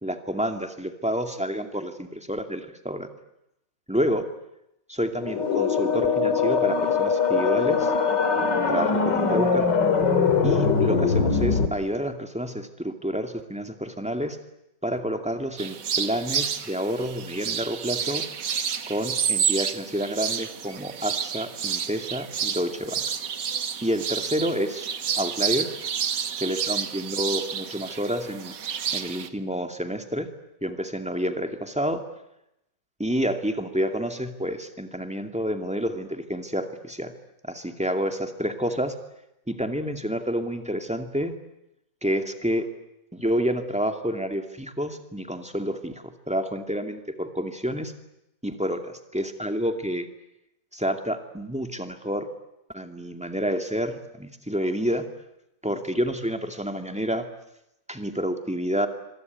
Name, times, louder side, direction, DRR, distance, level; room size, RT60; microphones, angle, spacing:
voice 1, 0.0-3.1 3.9-4.2 4.9-7.9 8.7-9.7 10.4-14.4 14.8-18.3 18.9-23.0 23.8-24.9 25.2-25.7 26.4-28.5 28.9-30.3 30.6-32.0 33.0-37.1 37.4-38.9 39.5-41.4 42.0-42.7 43.1-47.9 48.4-50.1 50.7-52.3 52.7-55.0 55.6-57.2 57.9-58.9, equal, 5° right, 6 dB, 2.2 m, -29 dB
sound 1, 5.2-11.7, left 5 dB, 80° left, 2.9 m, -22 dB
sound 2, 15.6-29.3, right 7 dB, 75° right, 2.0 m, -30 dB
26.0 x 23.5 x 9.5 m, 0.86 s
omnidirectional pair, 1.9 m